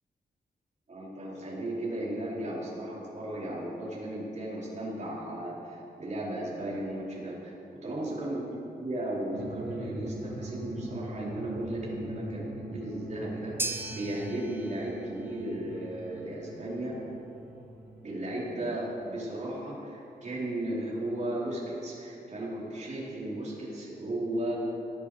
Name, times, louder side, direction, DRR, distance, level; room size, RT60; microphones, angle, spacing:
voice 1, 0.9-16.9 18.0-24.6, right 1 dB, 45° right, -6 dB, 4.5 m, -35 dB
sound 1, 9.3-18.5, right 2 dB, 75° right, 2.0 m, -42 dB
sound 2, 13.6-22.0, right 2 dB, 15° right, 0.9 m, -43 dB
18.5 x 12.5 x 5.1 m, 2.7 s
wide cardioid pair, 165°, 17 cm